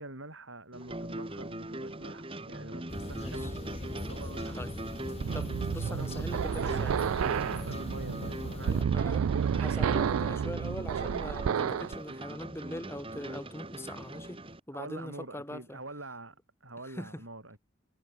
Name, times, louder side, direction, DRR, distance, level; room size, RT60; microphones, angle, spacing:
voice 1, 0.0-4.6 5.8-9.6 14.7-17.6, right 2 dB, 70° right, 7.4 m, -45 dB
sound 1, 0.7-14.6, right 1 dB, 25° right, 2.6 m, -41 dB
sound 2, 2.9-8.8, left 1 dB, 30° left, 0.9 m, -41 dB
voice 2, 3.2-3.5 4.5-4.7 5.3-6.9 8.7-9.2 9.5-14.4 14.7-15.8 16.8-17.2, left 1 dB, 10° left, 1.9 m, -42 dB
sound 3, 5.2-11.9, right 7 dB, 85° right, 0.4 m, -30 dB
head